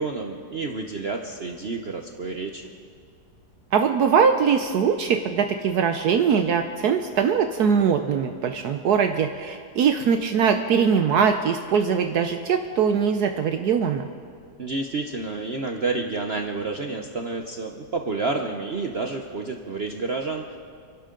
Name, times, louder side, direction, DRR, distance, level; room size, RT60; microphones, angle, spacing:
voice 1, 0.0-2.6 14.6-20.6, right 3 dB, 45° right, 3 dB, 0.9 m, -29 dB
voice 2, 3.7-14.1, right 7 dB, 70° right, 6 dB, 1.2 m, -21 dB
27.5 x 12.0 x 3.8 m, 2.2 s
omnidirectional pair, 1.9 m